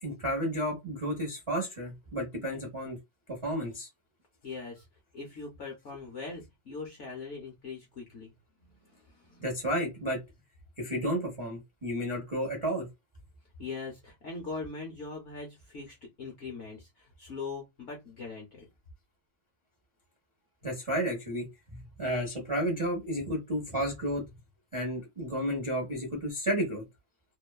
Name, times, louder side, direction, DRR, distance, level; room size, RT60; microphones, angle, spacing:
voice 1, 0.0-3.0 3.4-3.9 9.4-10.2 10.8-12.9 20.6-21.5 21.7-24.2 24.7-26.8, equal, 35° right, 0.4 m, -32 dB
voice 2, 4.4-4.9 5.1-8.3 8.8-9.4 13.6-18.7, left 4 dB, 65° left, 0.7 m, -41 dB
2.9 x 2.1 x 2.2 m
omnidirectional pair, 1.9 m